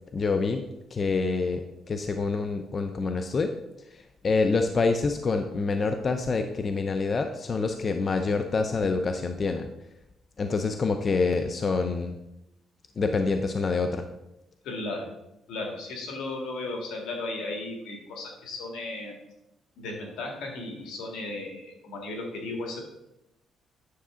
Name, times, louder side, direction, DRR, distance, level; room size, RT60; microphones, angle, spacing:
voice 1, 0.1-3.5 4.2-9.7 10.4-12.2 13.0-14.1, left 4 dB, 40° left, 6 dB, 0.6 m, -26 dB
voice 2, 10.4-10.7 14.6-15.1 15.5-19.2 19.8-22.8, left 2 dB, 80° left, 1 dB, 2.1 m, -35 dB
9.6 x 6.7 x 3.8 m, 0.88 s
cardioid pair, 95°, 0 cm